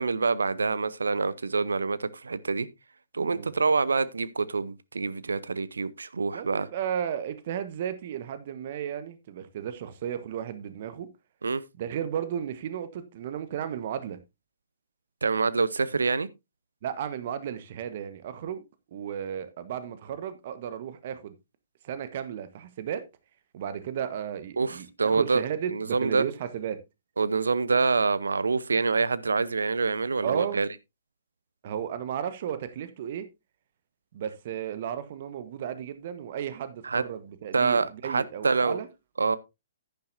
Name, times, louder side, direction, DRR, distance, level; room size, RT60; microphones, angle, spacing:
voice 1, 0.0-2.7 3.1-6.7 11.4-11.6 15.2-16.3 24.6-25.4 25.7-26.3 27.2-30.7 36.8-37.0 37.5-38.8 39.2-39.4, right 4 dB, 75° right, 0.7 m, -26 dB
voice 2, 6.3-11.1 11.8-14.2 16.8-18.6 18.9-21.3 21.8-23.0 23.5-26.8 30.2-30.6 31.6-33.3 34.1-38.9, right 9 dB, 50° right, 1.3 m, -34 dB
10.5 x 10.0 x 2.7 m
figure-of-eight pair, 125°, 0 cm